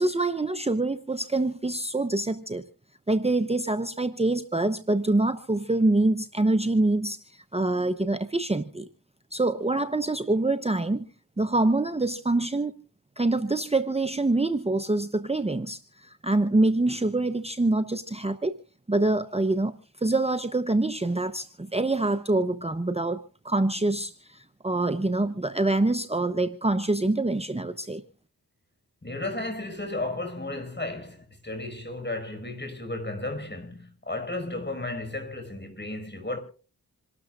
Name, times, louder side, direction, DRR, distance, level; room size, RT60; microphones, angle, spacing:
voice 1, 0.0-2.6 3.1-8.9 9.3-11.1 11.4-12.7 13.2-18.5 18.9-28.0, right 2 dB, 15° right, 1.0 m, -25 dB
voice 2, 29.0-36.4, left 2 dB, 25° left, 5.8 m, -34 dB
27.0 x 12.5 x 2.5 m
cardioid pair, 40°, 38 cm